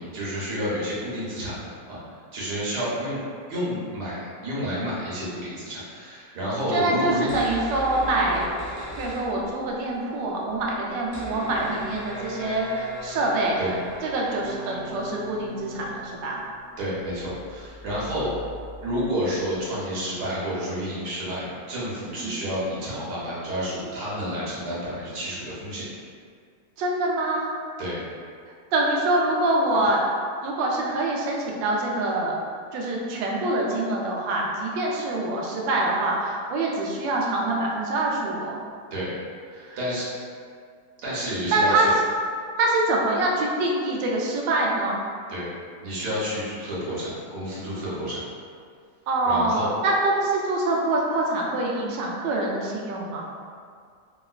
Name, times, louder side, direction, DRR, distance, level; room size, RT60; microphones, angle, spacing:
voice 1, 0.0-1.6 1.9-3.2 3.5-7.3 13.6-13.7 16.8-18.3 18.8-25.8 27.8-28.0 38.9-39.1 39.5-40.1 41.0-41.9 45.3-45.5 45.8-48.2 49.2-49.7, equal, 65° right, -8 dB, 1.4 m, -30 dB
voice 2, 6.7-8.5 9.0-13.6 14.0-16.4 22.1-22.4 26.8-27.5 28.7-30.0 30.4-32.4 32.7-38.6 39.6-39.8 41.5-41.9 42.6-45.0 49.1-53.3, right 2 dB, 85° right, -2 dB, 1.3 m, -25 dB
sound 1, 7.3-9.9 10.1-10.2 10.4-19.8, equal, 30° right, 0.8 m, -39 dB
3.1 x 2.9 x 2.3 m, 2.2 s
omnidirectional pair, 1.9 m